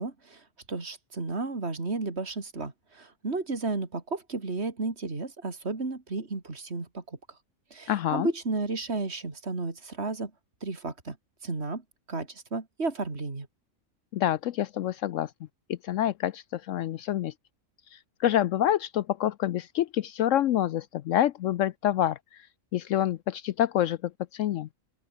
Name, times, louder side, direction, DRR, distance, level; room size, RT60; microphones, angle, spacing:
voice 1, 0.0-7.2 7.7-10.3 10.6-11.2 11.4-11.8 12.1-13.5, right 3 dB, 50° right, 3.4 m, -33 dB
voice 2, 7.9-8.3 14.1-15.3 15.7-17.3 17.9-22.2 22.7-24.7, left 11 dB, 70° left, 0.9 m, -27 dB
open air
omnidirectional pair, 1.4 m